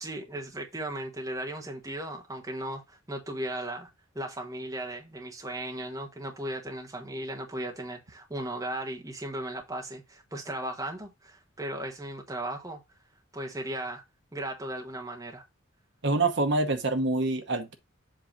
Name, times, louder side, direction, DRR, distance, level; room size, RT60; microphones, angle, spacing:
voice 1, 0.0-3.9 4.1-12.8 13.3-14.0 14.3-15.4, right 1 dB, 15° right, 1.2 m, -36 dB
voice 2, 16.0-17.7, right 2 dB, 55° right, 1.0 m, -26 dB
7.7 x 2.8 x 5.8 m
head